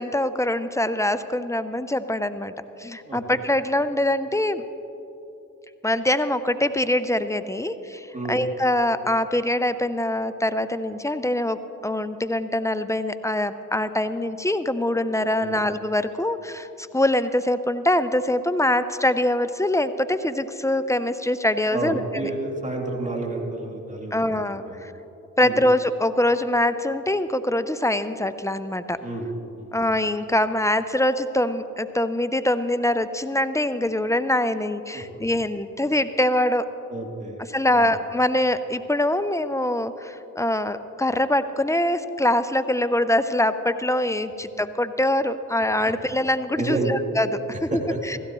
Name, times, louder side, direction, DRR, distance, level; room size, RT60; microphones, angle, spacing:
voice 1, 0.0-2.5 2.8-4.6 5.8-16.7 16.9-22.3 24.1-24.9 25.4-29.0 29.7-36.7 37.5-48.2, left 1 dB, 10° left, 12 dB, 0.6 m, -24 dB
voice 2, 3.0-3.4 8.1-8.4 15.4-15.6 21.7-24.4 24.7-24.8 25.4-25.6 29.0-29.3 29.6-29.7 34.9-35.3 36.9-37.4 37.7-37.9 45.8-45.9 46.6-46.9 47.7-48.2, right 2 dB, 20° right, 0 dB, 2.7 m, -30 dB
16.0 x 15.5 x 3.1 m, 3.0 s
hypercardioid pair, 40°, 36 cm